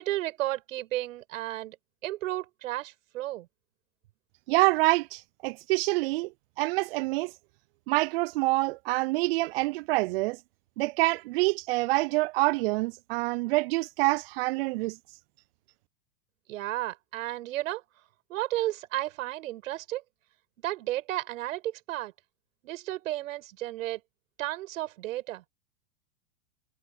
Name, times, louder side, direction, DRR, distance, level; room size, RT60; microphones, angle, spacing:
voice 1, 0.0-1.8 2.0-3.5 16.5-17.8 18.3-20.0 20.6-22.1 22.6-24.0 24.4-25.5, right 15 dB, 60° right, 7.1 m, -33 dB
voice 2, 4.5-6.3 6.6-7.3 7.9-10.4 10.8-15.0, right 21 dB, 45° right, 0.5 m, -26 dB
hypercardioid pair, 100°, 44 cm